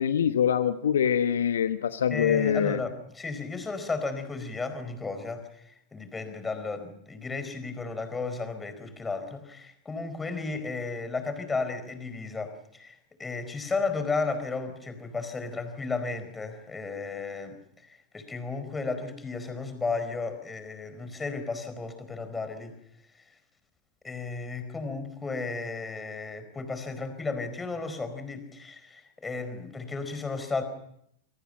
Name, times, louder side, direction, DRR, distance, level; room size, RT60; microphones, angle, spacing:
voice 1, 0.0-2.8, left 8 dB, 65° left, 11 dB, 1.1 m, -24 dB
voice 2, 2.1-17.6 17.8-22.7 24.0-30.6, left 4 dB, 15° left, 9 dB, 4.4 m, -34 dB
27.0 x 24.0 x 5.6 m, 0.71 s
figure-of-eight pair, 90°, 0 cm